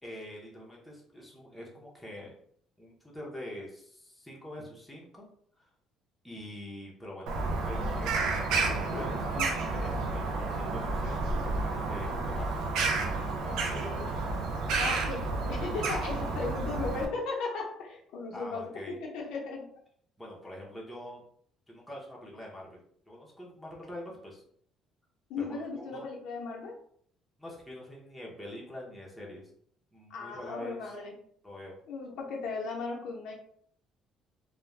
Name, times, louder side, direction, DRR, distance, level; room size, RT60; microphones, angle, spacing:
voice 1, 0.0-2.3 2.8-5.3 5.6-5.7 6.2-8.2 8.6-12.6 13.2-13.8 16.1-16.4 18.3-19.0 20.2-21.2 21.7-22.8 23.1-24.4 25.4-26.0 27.4-29.5 29.9-30.9 31.4-31.8, left 1 dB, 5° left, -4 dB, 0.8 m, -45 dB
Bird vocalization bird call bird song, 7.3-17.1, right 3 dB, 80° right, 0.5 m, -31 dB
voice 2, 8.7-9.5 10.7-10.8 13.4-14.2 14.8-19.7 25.3-26.8 30.1-31.1 31.9-33.3, left 4 dB, 75° left, -1 dB, 0.7 m, -37 dB
2.4 x 2.2 x 3.2 m, 0.64 s
cardioid pair, 135°, 0 cm